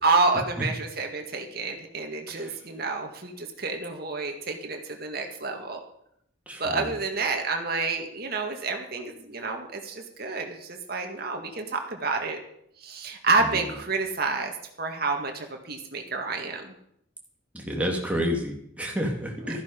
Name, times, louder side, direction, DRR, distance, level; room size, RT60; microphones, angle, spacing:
voice 1, 0.0-5.8 6.6-12.4 12.8-14.5 14.8-16.7, right 3 dB, 50° right, 3 dB, 1.9 m, -29 dB
voice 2, 6.5-6.9 13.4-13.5 17.5-19.6, equal, 5° right, 0 dB, 2.3 m, -30 dB
13.5 x 11.0 x 5.3 m, 0.73 s
head